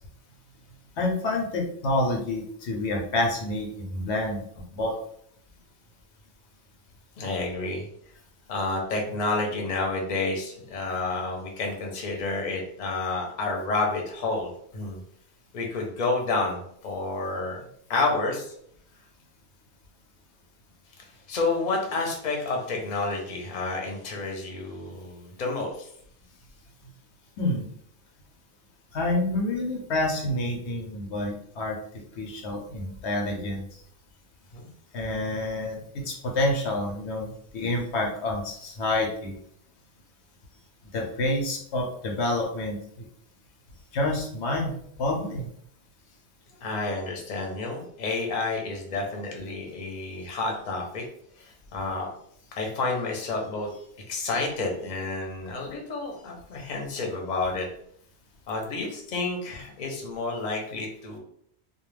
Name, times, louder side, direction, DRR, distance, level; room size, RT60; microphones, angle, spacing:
voice 1, 1.0-4.4 4.7-4.9 27.4-27.7 28.9-31.8 32.2-33.6 34.9-39.4 40.9-43.1 43.9-44.7 45.0-45.5, left 2 dB, 85° left, 2 dB, 0.9 m, -28 dB
voice 2, 7.2-7.9 8.5-15.0 15.5-16.6 16.8-18.5 21.3-25.9 34.5-34.7 46.6-51.0 51.4-51.5 51.7-52.1 52.6-53.7 54.1-57.7 58.5-61.2, left 3 dB, 50° left, 1 dB, 0.7 m, -30 dB
2.3 x 2.2 x 3.1 m, 0.66 s
omnidirectional pair, 1.1 m